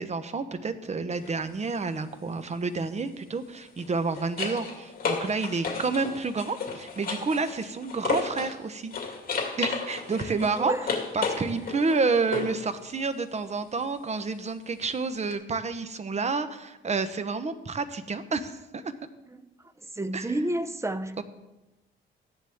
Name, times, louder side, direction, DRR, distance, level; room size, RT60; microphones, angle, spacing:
voice 1, 0.0-8.9 9.6-18.9 20.1-20.4 21.2-21.3, right 4 dB, 35° right, 1.0 m, -29 dB
sound 1, 1.1-1.3 3.6-8.6 8.9-12.7 15.3-15.4, left 5 dB, 45° left, 2.4 m, -33 dB
voice 2, 20.0-21.2, right 1 dB, 15° right, 0.7 m, -29 dB
14.0 x 10.5 x 3.6 m
cardioid pair, 95°, 20 cm